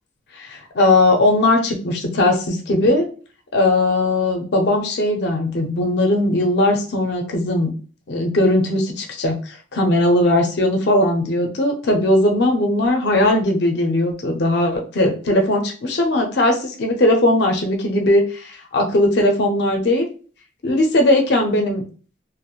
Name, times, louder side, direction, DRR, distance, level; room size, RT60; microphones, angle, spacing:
voice 1, 0.3-3.1 3.5-7.7 8.1-20.1 20.6-21.8, left 1 dB, 55° left, 2 dB, 0.5 m, -18 dB
2.9 x 2.1 x 2.3 m, 0.39 s
head